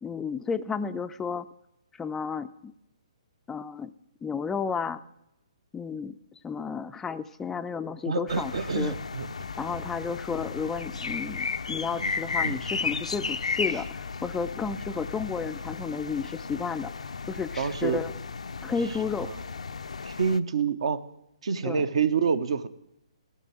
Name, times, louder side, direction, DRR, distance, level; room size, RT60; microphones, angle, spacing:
voice 1, 0.0-1.5 2.0-2.7 3.5-3.9 4.2-5.0 5.7-6.2 6.4-8.9 9.6-16.9 17.3-18.1 18.6-19.3 21.6-21.9, left 5 dB, 10° left, 10 dB, 0.3 m, -32 dB
voice 2, 8.1-9.3 12.0-12.1 12.4-12.6 13.7-13.8 17.6-18.0 19.3-19.4 20.0-21.0 21.4-22.7, right 6 dB, 60° right, 14 dB, 0.8 m, -27 dB
sound 1, 8.3-20.4, left 5 dB, 75° left, 0.4 m, -34 dB
15.0 x 6.0 x 7.6 m, 0.82 s
figure-of-eight pair, 135°, 3 cm